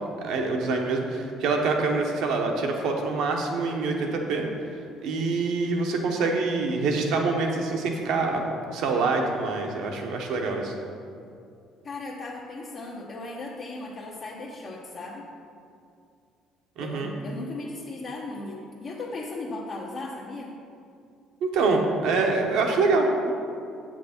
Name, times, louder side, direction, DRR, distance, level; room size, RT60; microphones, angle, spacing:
voice 1, 0.0-4.4 4.7-8.4 8.7-10.7 16.8-17.1 21.4-23.3, right 3 dB, 70° right, 2 dB, 1.1 m, -25 dB
voice 2, 11.8-15.3 16.8-20.6, left 2 dB, 50° left, -4 dB, 1.0 m, -37 dB
7.7 x 6.0 x 4.4 m, 2.5 s
supercardioid pair, 65°, 0 cm